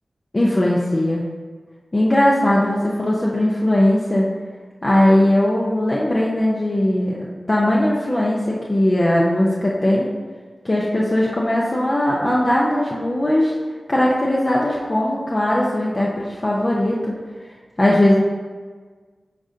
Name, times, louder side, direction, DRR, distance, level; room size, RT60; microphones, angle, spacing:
voice 1, 0.3-1.2 1.9-4.3 4.8-7.2 7.5-10.1 10.6-13.5 13.9-17.2 17.8-18.2, left 1 dB, 35° left, -5 dB, 0.8 m, -19 dB
10.0 x 3.8 x 2.8 m, 1.5 s
cardioid pair, 55°, 0 cm